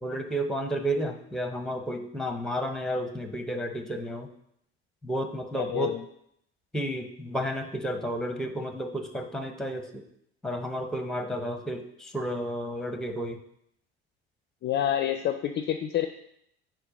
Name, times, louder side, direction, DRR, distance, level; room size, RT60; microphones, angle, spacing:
voice 1, 0.0-4.3 5.0-5.9 6.7-10.0 10.4-13.4, equal, ahead, 6 dB, 0.8 m, -32 dB
voice 2, 5.6-6.0 14.6-16.1, left 10 dB, 35° left, 8 dB, 0.4 m, -28 dB
4.6 x 4.5 x 5.0 m, 0.73 s
hypercardioid pair, 65°, 32 cm